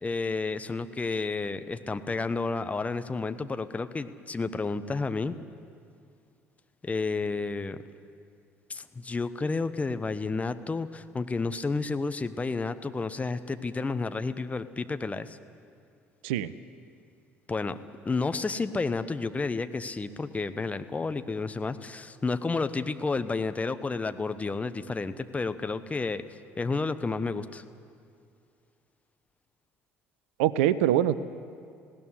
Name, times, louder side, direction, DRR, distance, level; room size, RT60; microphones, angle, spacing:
voice 1, 0.0-5.3 6.8-7.8 8.7-15.4 17.5-17.8 18.0-26.2 26.6-27.6, left 3 dB, 20° left, 11 dB, 1.0 m, -31 dB
voice 2, 30.4-31.2, right 12 dB, 65° right, 16 dB, 0.6 m, -23 dB
19.5 x 16.5 x 9.9 m, 2.3 s
figure-of-eight pair, 55°, 7 cm